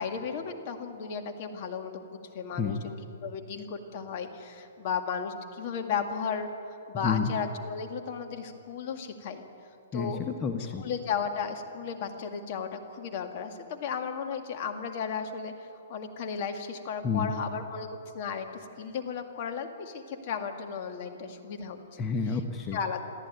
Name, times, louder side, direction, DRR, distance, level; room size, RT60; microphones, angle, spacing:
voice 1, 0.0-3.0 3.2-6.5 6.9-9.4 9.9-10.2 10.8-15.5 15.9-17.9 18.1-21.8 22.7-23.1, left 6 dB, 45° left, 6 dB, 2.0 m, -34 dB
voice 2, 9.9-10.8 17.0-17.3 22.0-22.8, left 5 dB, 20° left, 4 dB, 1.1 m, -30 dB
23.5 x 14.0 x 9.4 m, 2.8 s
hypercardioid pair, 150°, 0 cm